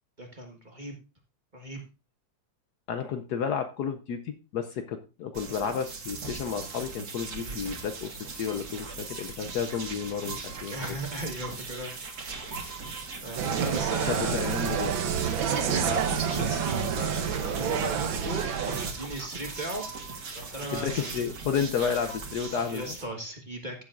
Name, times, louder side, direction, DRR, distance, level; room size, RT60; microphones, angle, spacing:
voice 1, 0.2-1.0 1.5-1.8 7.4-7.6 10.7-11.9 13.2-14.6 15.4-21.3 22.5-23.8, right 1 dB, 25° right, 2 dB, 1.4 m, -37 dB
voice 2, 2.9-10.7 14.2-14.9 20.7-22.8, left 7 dB, 65° left, 8 dB, 1.1 m, -31 dB
sound 1, 5.3-23.0, right 4 dB, 55° right, 1.9 m, -39 dB
Insect, 13.4-18.9, right 7 dB, 85° right, 1.7 m, -28 dB
15.5 x 7.3 x 2.5 m, 0.30 s
omnidirectional pair, 2.1 m